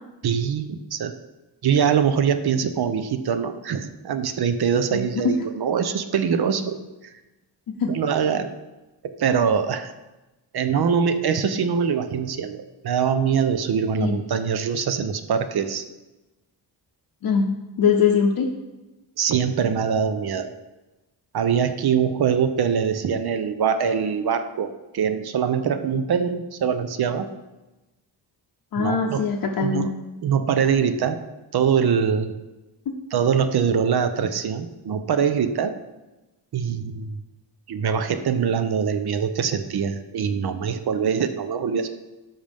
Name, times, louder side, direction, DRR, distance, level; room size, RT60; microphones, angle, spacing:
voice 1, 0.2-1.1 1.6-7.1 7.9-8.5 9.0-9.9 10.5-15.8 19.2-20.5 21.3-27.3 28.8-29.3 29.6-29.9 30.2-31.2 31.5-32.3 33.1-35.8 36.5-37.2 37.7-41.9, right 7 dB, 65° right, 9 dB, 0.8 m, -23 dB
voice 2, 17.2-18.5 28.7-29.9, left 6 dB, 60° left, 0 dB, 0.8 m, -22 dB
13.0 x 5.2 x 3.5 m, 1.1 s
wide cardioid pair, 130°, 42 cm